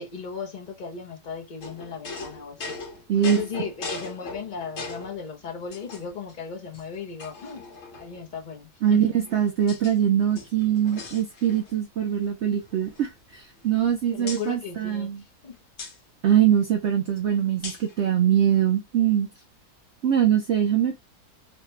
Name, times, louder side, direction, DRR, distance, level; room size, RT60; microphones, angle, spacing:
voice 1, 0.0-2.8 3.1-7.6 8.0-9.0 14.1-15.1 15.4-15.6, left 6 dB, 40° left, 0.7 m, -36 dB
sound 1, 1.6-5.2 5.7-6.3 6.7-6.8 7.2-8.2 9.0-10.0 10.2-11.8 12.1-12.3 12.6-13.9 14.3-14.5 15.8-16.0 17.6-18.0, left 3 dB, 60° left, 1.4 m, -39 dB
voice 2, 3.1-3.7 8.8-15.2 16.2-19.3 20.0-21.0, right 9 dB, 65° right, 0.7 m, -23 dB
3.2 x 2.2 x 2.9 m
omnidirectional pair, 1.6 m